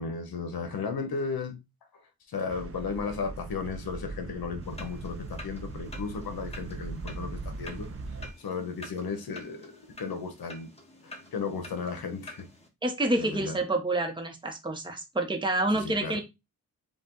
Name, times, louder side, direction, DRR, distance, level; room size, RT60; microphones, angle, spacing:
voice 1, 0.0-1.6 2.3-7.9 8.4-10.7 11.0-12.5 13.2-13.6 15.7-16.2, left 5 dB, 75° left, 1.1 m, -35 dB
sound 1, 2.5-8.3, right 3 dB, 40° right, 0.6 m, -40 dB
sound 2, 4.6-12.7, left 2 dB, 15° left, 1.3 m, -49 dB
voice 2, 12.8-16.2, right 2 dB, 15° right, 0.9 m, -28 dB
5.1 x 2.4 x 3.8 m
wide cardioid pair, 105°, 37 cm